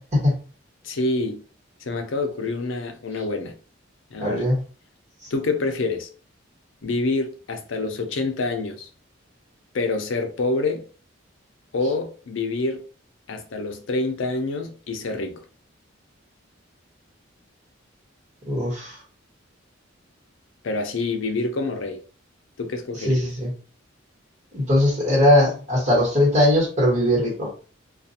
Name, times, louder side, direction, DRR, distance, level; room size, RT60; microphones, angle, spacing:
voice 1, 0.8-1.4 1.8-3.5 4.1-4.5 5.3-6.1 6.8-8.9 9.7-10.8 11.7-12.8 13.3-15.4 20.6-22.0 22.6-23.3, left 3 dB, 70° left, 0.5 m, -27 dB
voice 2, 4.2-4.6 18.5-19.0 23.0-23.5 24.5-27.5, left 1 dB, 35° right, 1.4 m, -20 dB
2.5 x 2.3 x 2.7 m
head